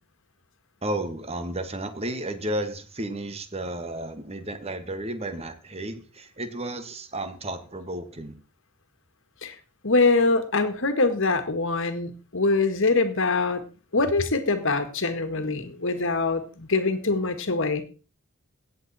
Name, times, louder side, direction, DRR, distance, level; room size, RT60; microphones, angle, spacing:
voice 1, 0.8-8.3, right 1 dB, 30° right, 9 dB, 1.5 m, -33 dB
voice 2, 9.8-13.6 13.9-17.8, left 3 dB, 60° left, 9 dB, 1.7 m, -24 dB
17.0 x 8.2 x 4.2 m, 0.36 s
head